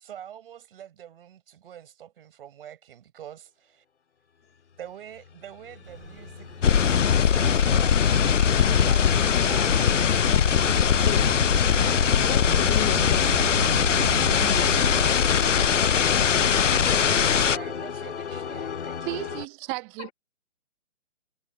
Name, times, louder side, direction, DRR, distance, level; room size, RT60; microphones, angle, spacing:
voice 1, 0.0-3.8 4.8-10.0 11.4-11.5 15.7-16.1 17.0-17.1 17.5-19.3, right 10 dB, 50° right, 7.0 m, -45 dB
sound 1, 5.1-19.5, left 7 dB, 65° left, 4.9 m, -37 dB
sound 2, 5.8-17.4, right 6 dB, 80° right, 1.5 m, -37 dB
sound 3, 6.6-17.6, left 7 dB, 85° left, 0.9 m, -21 dB
voice 2, 11.0-11.4 12.2-15.1 20.0-20.1, left 15 dB, 15° left, 2.2 m, -35 dB
voice 3, 19.0-20.1, right 27 dB, 15° right, 0.8 m, -34 dB
hypercardioid pair, 145°, 36 cm